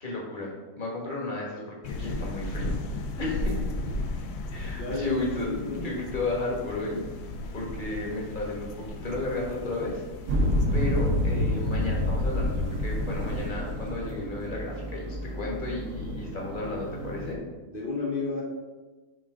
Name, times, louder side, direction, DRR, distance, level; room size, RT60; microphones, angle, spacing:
voice 1, 0.0-2.8 3.2-3.5 4.5-7.2 7.5-10.0 10.7-17.4, left 2 dB, 30° left, -2 dB, 1.1 m, -33 dB
sound 1, 1.8-13.5, left 2 dB, 85° left, 0.8 m, -35 dB
voice 2, 3.2-3.5 4.5-5.8 17.7-18.4, left 3 dB, 65° left, -3 dB, 0.5 m, -32 dB
sound 2, 10.3-17.3, left 1 dB, 65° right, 1.7 m, -29 dB
6.0 x 3.5 x 5.1 m, 1.3 s
omnidirectional pair, 2.3 m